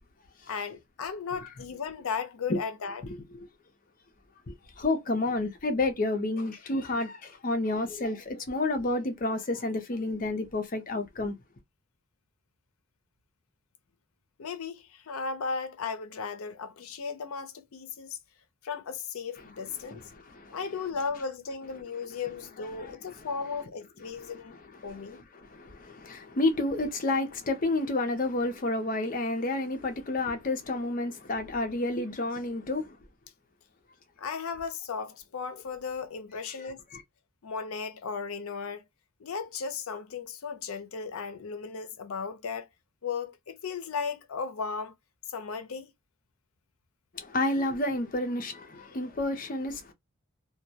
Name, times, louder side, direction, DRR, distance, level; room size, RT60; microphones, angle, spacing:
voice 1, 0.5-3.0 14.4-18.2 18.6-20.0 20.5-25.2 34.2-36.8 37.4-38.8 39.2-42.7 43.0-45.0 45.3-45.9, left 5 dB, 85° left, 0.5 m, -36 dB
voice 2, 4.5-11.3 19.8-20.6 22.8-23.3 24.2-24.4 24.7-33.0 36.5-36.6 36.9-37.0 47.1-49.9, left 2 dB, 40° left, 0.5 m, -30 dB
2.2 x 2.1 x 2.7 m
head